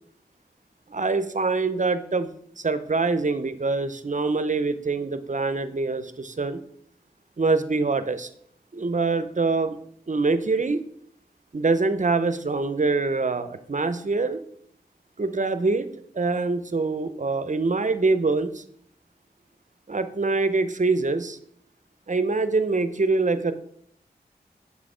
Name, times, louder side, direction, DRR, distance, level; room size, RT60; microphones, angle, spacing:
voice 1, 0.9-2.3 2.6-6.6 7.4-8.3 8.7-9.8 10.1-10.8 11.5-14.4 15.2-15.9 16.1-18.6 19.9-21.4 22.1-23.5, right 3 dB, 45° right, 12 dB, 0.6 m, -24 dB
7.3 x 4.0 x 4.9 m, 0.66 s
wide cardioid pair, 50°, 18 cm